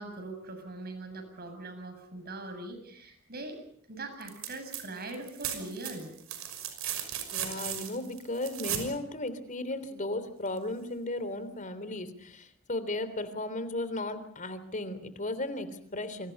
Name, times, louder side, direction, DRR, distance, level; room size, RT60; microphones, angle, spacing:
voice 1, 0.0-3.6 3.9-6.1, right 2 dB, 50° right, 8 dB, 7.5 m, -41 dB
sound 1, 4.2-4.8 5.1-8.9 10.6-10.7, right 9 dB, 80° right, 5.8 m, -36 dB
voice 2, 7.3-16.3, left 2 dB, 40° left, 12 dB, 3.4 m, -35 dB
28.5 x 25.5 x 5.5 m, 0.67 s
head